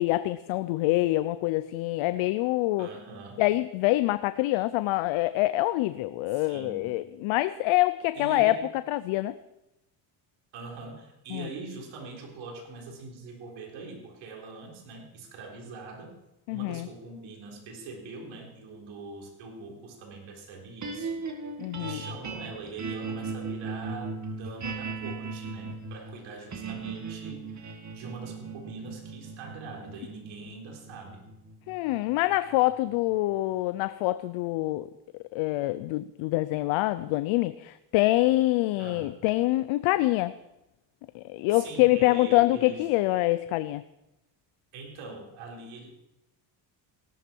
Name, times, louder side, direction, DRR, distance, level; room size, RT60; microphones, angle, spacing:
voice 1, 0.0-2.9 3.4-9.4 11.3-11.5 16.5-16.9 21.6-22.0 31.7-34.9 35.3-40.3 41.1-43.8, left 18 dB, 90° left, 14 dB, 0.7 m, -25 dB
voice 2, 2.8-3.4 6.3-6.9 8.1-8.6 10.5-16.1 16.5-21.2 21.8-31.2 38.8-39.1 41.5-42.9 44.7-45.9, right 3 dB, 80° right, 0 dB, 4.2 m, -43 dB
sound 1, 20.8-33.1, right 4 dB, 35° right, 2.0 m, -38 dB
16.5 x 13.0 x 4.6 m, 0.90 s
cardioid pair, 100°, 47 cm